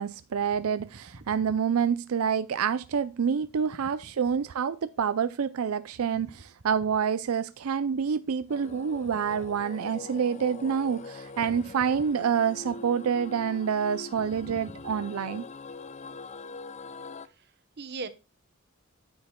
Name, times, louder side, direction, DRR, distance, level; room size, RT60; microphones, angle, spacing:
voice 1, 0.0-15.5, right 7 dB, 85° right, 0.4 m, -27 dB
sound 1, 8.5-17.3, left 3 dB, 35° left, 0.5 m, -43 dB
voice 2, 14.5-14.8 17.8-18.1, right 3 dB, 50° right, 1.0 m, -39 dB
10.0 x 7.9 x 2.2 m
head